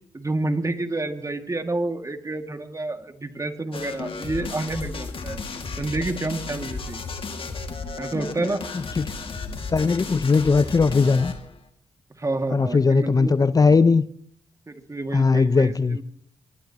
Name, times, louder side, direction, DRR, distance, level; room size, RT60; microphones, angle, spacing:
voice 1, 0.1-5.4 5.8-7.0 8.0-8.6 12.2-13.3 14.7-16.0, right 2 dB, 30° right, 2.3 m, -29 dB
sound 1, 3.7-11.5, left 4 dB, 50° left, 2.3 m, -34 dB
voice 2, 8.7-9.1 9.7-11.3 12.5-14.1 15.1-16.0, left 4 dB, 35° left, 0.6 m, -19 dB
23.5 x 19.5 x 3.0 m
hypercardioid pair, 40°, 11 cm